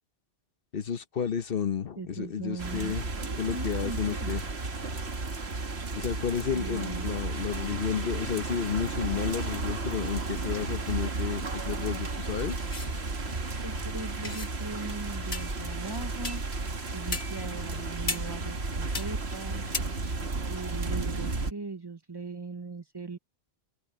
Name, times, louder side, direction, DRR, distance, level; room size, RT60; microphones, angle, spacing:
voice 1, 0.7-3.0 3.4-4.4 6.0-12.6, left 7 dB, 65° left, 1.1 m, -31 dB
voice 2, 2.0-4.4 6.5-7.2 13.6-16.4 16.9-19.6 20.5-23.2, right 3 dB, 25° right, 0.9 m, -40 dB
sound 1, 2.6-21.5, right 3 dB, 80° right, 2.1 m, -33 dB
sound 2, 12.4-16.0 16.3-16.9 17.2-17.3 17.6-17.8 18.1-19.8, equal, 30° left, 7.7 m, -49 dB
sound 3, 12.7-12.9 14.2-14.5 15.3-15.7 16.2-16.6 17.1-17.6 18.1-18.5 18.9-19.1 19.7-19.8, left 3 dB, 80° left, 2.3 m, -36 dB
omnidirectional pair, 1.1 m